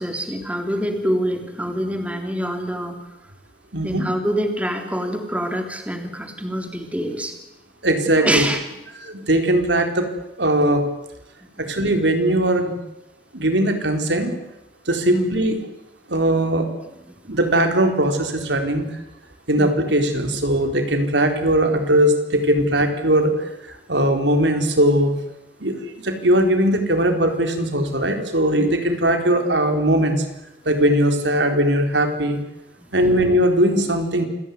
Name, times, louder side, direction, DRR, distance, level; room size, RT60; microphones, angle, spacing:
voice 1, 0.0-3.0 3.8-7.4 8.2-8.6 11.6-11.7 15.1-15.3 17.1-17.2 19.6-19.7 28.6-28.7 32.8-33.2, equal, 10° right, 5 dB, 3.5 m, -25 dB
voice 2, 3.7-4.1 7.8-8.5 9.0-10.1 10.4-10.9 11.6-12.8 13.3-14.3 14.9-15.6 16.1-16.7 17.3-19.0 19.5-25.1 25.6-30.3 30.7-32.4 32.9-34.2, right 1 dB, 90° right, 5 dB, 4.1 m, -19 dB
28.0 x 18.0 x 9.5 m, 0.90 s
head